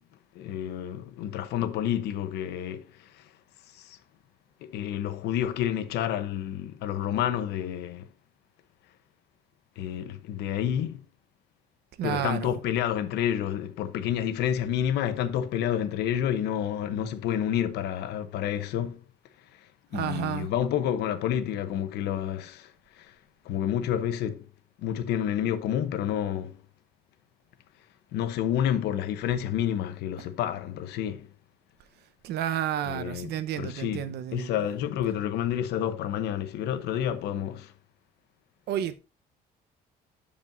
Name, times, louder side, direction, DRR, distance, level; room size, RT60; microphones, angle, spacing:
voice 1, 0.3-3.3 3.7-4.0 4.6-8.1 9.8-11.0 12.0-19.1 19.5-23.2 23.4-24.5 24.8-26.6 28.1-31.3 32.8-37.7, left 10 dB, 80° left, 0.9 m, -29 dB
voice 2, 12.0-12.6 19.9-20.5 32.2-34.5 38.7-38.9, right 11 dB, 75° right, 0.9 m, -31 dB
12.0 x 5.3 x 2.6 m
cardioid pair, 110°, 17 cm